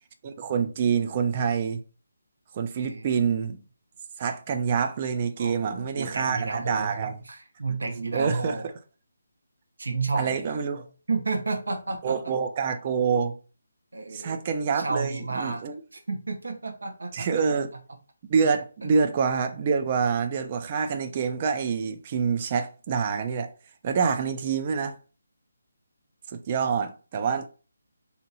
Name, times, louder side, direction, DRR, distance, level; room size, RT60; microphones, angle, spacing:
voice 1, 0.2-1.8 2.5-3.6 4.2-7.2 8.1-8.6 10.1-10.9 12.0-13.4 14.1-15.8 17.1-17.7 18.3-23.5 23.8-25.0 26.3-27.5, right 6 dB, 25° right, 0.3 m, -26 dB
voice 2, 2.8-3.1 5.4-6.9 7.3-8.6 9.8-10.4 11.1-12.1 13.9-14.4 14.7-15.6 15.9-17.3 18.8-18.9, right 3 dB, 80° right, 0.8 m, -31 dB
2.8 x 2.5 x 4.0 m
hypercardioid pair, 175°, 0 cm